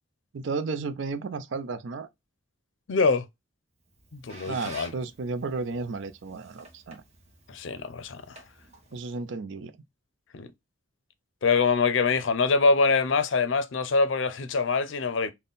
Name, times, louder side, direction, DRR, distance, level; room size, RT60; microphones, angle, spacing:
voice 1, 0.3-2.1 4.5-7.0 8.9-9.7, right 4 dB, 65° right, 0.4 m, -33 dB
voice 2, 2.9-3.3 4.1-4.9 7.5-8.4 10.3-10.5 11.4-15.3, left 4 dB, 70° left, 0.5 m, -24 dB
Squeak, 3.8-9.3, right 2 dB, 35° right, 0.9 m, -50 dB
3.6 x 2.2 x 3.9 m
head